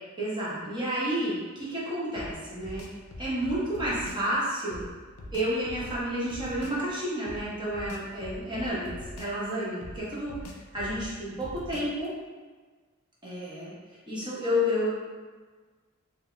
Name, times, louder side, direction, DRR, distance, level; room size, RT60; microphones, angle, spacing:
voice 1, 0.2-2.8 3.2-4.9 5.3-10.4 10.7-12.1 13.2-13.7 14.1-14.9, equal, 20° right, -8 dB, 1.0 m, -30 dB
sound 1, 2.2-4.3 4.7-6.8 7.3-9.5 9.8-12.1, left 1 dB, 75° left, 0.5 m, -43 dB
4.0 x 2.1 x 3.3 m, 1.4 s
head